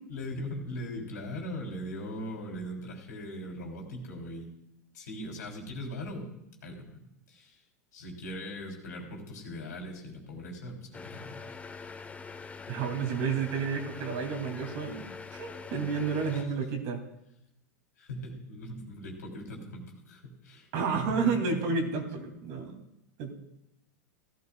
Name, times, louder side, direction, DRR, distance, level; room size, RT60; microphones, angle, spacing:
voice 1, 0.1-4.5 4.9-6.3 6.6-7.0 7.3-7.6 7.9-11.6 16.3-16.4 18.0-21.3, left 1 dB, 80° left, 0 dB, 3.0 m, -40 dB
sound 1, 10.9-16.4, left 5 dB, 15° left, 0.9 m, -44 dB
voice 2, 12.7-15.1 15.3-17.0 20.7-22.8 23.2-23.3, right 5 dB, 55° right, 4 dB, 2.5 m, -31 dB
16.5 x 12.5 x 2.3 m, 0.85 s
hypercardioid pair, 95°, 9 cm